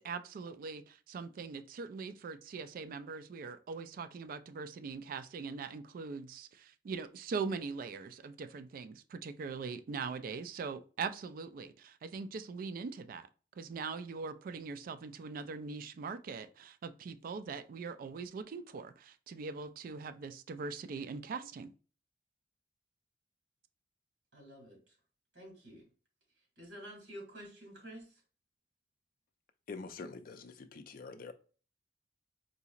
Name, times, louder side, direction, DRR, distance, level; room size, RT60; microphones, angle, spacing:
voice 1, 0.0-13.3 13.6-21.7, right 5 dB, 50° right, 0.3 m, -41 dB
voice 2, 24.3-24.9 25.3-25.9 26.6-28.2, equal, 75° right, 1.8 m, -50 dB
voice 3, 29.7-31.3, left 4 dB, 50° left, 0.4 m, -45 dB
3.9 x 2.9 x 2.4 m
head